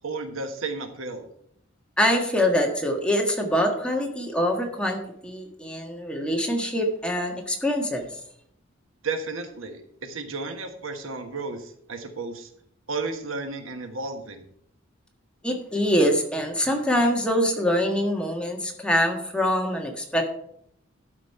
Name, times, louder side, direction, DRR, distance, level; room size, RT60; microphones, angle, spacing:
voice 1, 0.0-1.3 9.0-12.5 12.9-14.5, right 3 dB, 80° right, 7 dB, 1.4 m, -33 dB
voice 2, 2.0-8.1 15.4-20.3, equal, 5° left, 2 dB, 1.5 m, -24 dB
12.0 x 5.2 x 5.4 m, 0.69 s
head